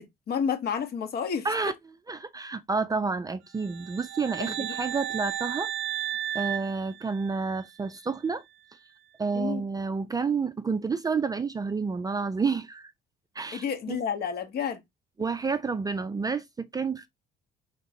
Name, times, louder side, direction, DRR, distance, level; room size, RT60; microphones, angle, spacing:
voice 1, 0.0-1.5 4.3-4.8 9.3-9.6 13.5-14.8, left 7 dB, 55° left, 1.0 m, -30 dB
voice 2, 2.1-6.1 6.3-8.4 9.2-12.9 13.4-14.0 15.2-17.1, right 4 dB, 20° right, 0.4 m, -30 dB
sound 1, 3.6-7.6, right 11 dB, 80° right, 0.5 m, -34 dB
3.9 x 3.6 x 2.6 m
cardioid pair, 95°, 20 cm